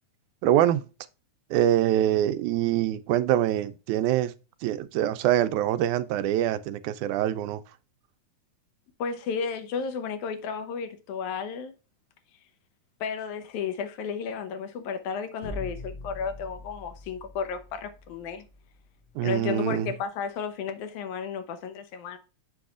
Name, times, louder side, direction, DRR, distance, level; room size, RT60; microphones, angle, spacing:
voice 1, 0.4-0.8 1.5-4.3 4.6-7.6 19.2-19.9, right 12 dB, 85° right, 1.9 m, -24 dB
voice 2, 9.0-11.7 13.0-18.5 19.2-22.2, left 6 dB, 75° left, 2.2 m, -33 dB
sound 1, 15.4-19.3, left 2 dB, 60° left, 4.5 m, -43 dB
7.7 x 6.2 x 2.4 m
omnidirectional pair, 3.5 m